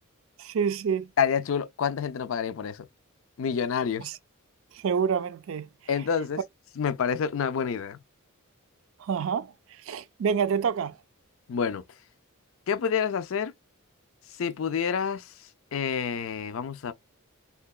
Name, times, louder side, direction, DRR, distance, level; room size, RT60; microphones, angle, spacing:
voice 1, 0.4-1.1 4.0-4.2 4.7-5.7 9.0-9.5 9.8-11.0, right 6 dB, 65° right, 0.4 m, -27 dB
voice 2, 1.2-2.9 3.4-4.1 5.9-6.4 6.8-8.0 11.5-11.8 12.7-13.5 14.4-15.3 15.7-16.9, left 7 dB, 60° left, 0.4 m, -28 dB
3.7 x 2.2 x 2.3 m
head